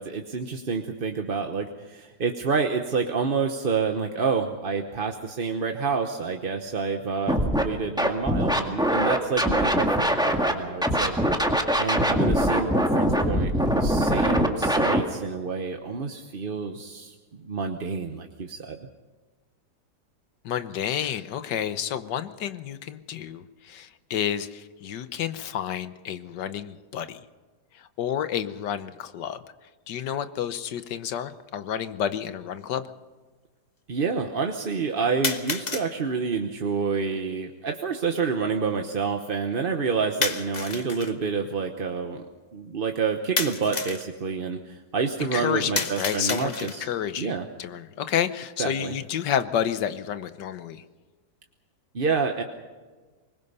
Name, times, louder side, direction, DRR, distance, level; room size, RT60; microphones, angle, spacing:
voice 1, 0.0-11.1 11.8-18.9 33.9-42.2 42.5-46.9 47.2-47.5 48.6-48.9 51.9-52.4, right 5 dB, 35° right, 5 dB, 1.0 m, -28 dB
Scratching (performance technique), 7.3-7.6 8.0-10.5 10.8-15.0, equal, ahead, 1.7 m, -22 dB
voice 2, 20.4-27.2 28.0-29.4 29.9-32.9 45.3-50.8, left 9 dB, 80° left, 11 dB, 1.6 m, -30 dB
sound 1, 30.9-31.0 32.0-32.1 35.2-35.9 40.2-41.1 43.4-44.1 45.8-46.9, left 3 dB, 30° left, 1.2 m, -30 dB
24.0 x 21.0 x 5.6 m, 1.4 s
omnidirectional pair, 1.9 m